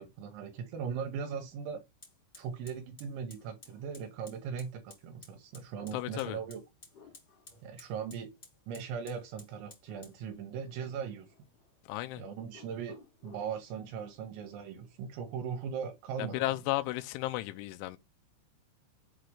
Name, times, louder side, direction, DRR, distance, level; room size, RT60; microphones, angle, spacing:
voice 1, 0.0-1.9 2.4-6.6 7.6-8.3 8.7-11.3 12.2-13.0 13.2-16.4, right 7 dB, 80° right, 3.1 m, -39 dB
Fire, 2.0-16.0, left 2 dB, 35° left, 0.9 m, -59 dB
sound 1, 3.4-4.7 5.7-7.7 9.9-10.3 10.5-11.7 12.5-13.6, left 7 dB, 55° left, 2.4 m, -60 dB
voice 2, 5.9-6.4 11.8-12.2 16.2-18.0, left 17 dB, 85° left, 3.0 m, -34 dB
7.7 x 2.9 x 4.8 m
omnidirectional pair, 5.5 m